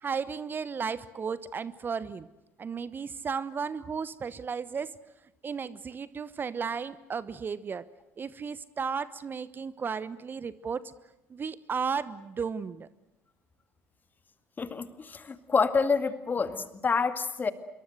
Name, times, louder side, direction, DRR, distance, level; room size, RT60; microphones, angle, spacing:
voice 1, 0.0-2.3 2.6-4.9 5.4-7.9 8.2-10.9 11.3-12.9, right 6 dB, 30° right, 17 dB, 1.0 m, -34 dB
voice 2, 14.6-17.5, left 5 dB, 30° left, 11 dB, 2.1 m, -27 dB
26.5 x 23.5 x 7.9 m, 0.91 s
figure-of-eight pair, 55°, 6 cm